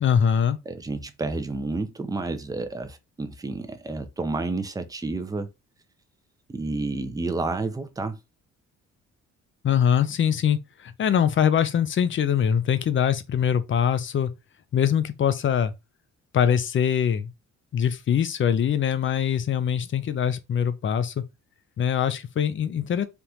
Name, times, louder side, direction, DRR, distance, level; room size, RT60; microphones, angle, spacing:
voice 1, 0.0-0.6 9.6-14.3 14.7-15.7 16.3-17.3 17.7-21.2 21.8-23.0, left 8 dB, 40° left, 0.5 m, -23 dB
voice 2, 0.7-5.5 6.5-8.2, right 3 dB, 10° right, 0.5 m, -30 dB
3.5 x 2.5 x 2.8 m
cardioid pair, 90°, 30 cm